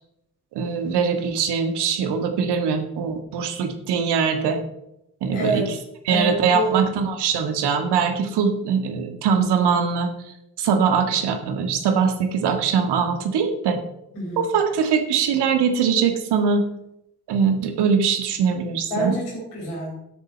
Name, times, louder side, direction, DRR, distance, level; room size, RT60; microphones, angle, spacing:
voice 1, 0.5-4.6 5.2-5.6 6.1-10.1 10.6-13.8 14.4-16.6 17.3-19.1, right 6 dB, 60° right, 7 dB, 1.7 m, -22 dB
voice 2, 5.3-5.8 6.1-6.8 14.1-14.4 18.8-20.0, right 1 dB, 75° left, -2 dB, 4.7 m, -27 dB
12.5 x 8.2 x 4.2 m, 0.83 s
figure-of-eight pair, 45°, 46 cm